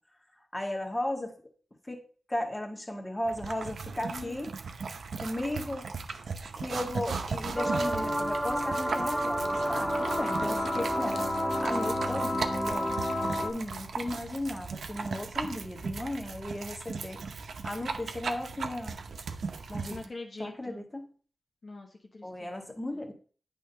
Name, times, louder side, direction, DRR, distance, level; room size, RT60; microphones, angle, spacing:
voice 1, 0.5-1.3 1.9-2.0 2.3-4.6 5.1-5.8 6.5-11.3 11.6-13.0 13.4-17.2 17.6-19.0 19.7-20.0 20.4-21.1 22.2-23.1, left 1 dB, 20° left, 3 dB, 1.7 m, -35 dB
sound 1, 3.2-20.1, right 4 dB, 80° right, 0.7 m, -37 dB
voice 2, 4.0-4.4 19.9-20.8 21.6-23.0, left 3 dB, 50° left, 1 dB, 1.0 m, -44 dB
sound 2, 7.6-13.5, equal, 5° left, 1.4 m, -30 dB
8.5 x 3.6 x 5.5 m, 0.42 s
cardioid pair, 45°, 0 cm